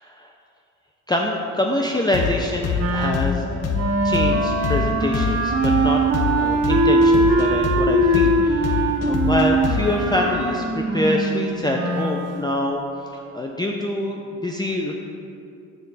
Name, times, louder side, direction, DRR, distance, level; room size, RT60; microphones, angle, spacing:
voice 1, 1.1-3.5 4.0-6.0 6.3-12.8 13.1-15.0, left 1 dB, 15° left, 0 dB, 0.5 m, -25 dB
sound 1, 2.1-10.1, left 6 dB, 55° left, 0.7 m, -25 dB
Wind instrument woodwind instrument, 2.8-12.2, right 2 dB, 55° right, 0.9 m, -21 dB
7.1 x 6.6 x 4.0 m, 2.5 s
cardioid pair, 90°, 30 cm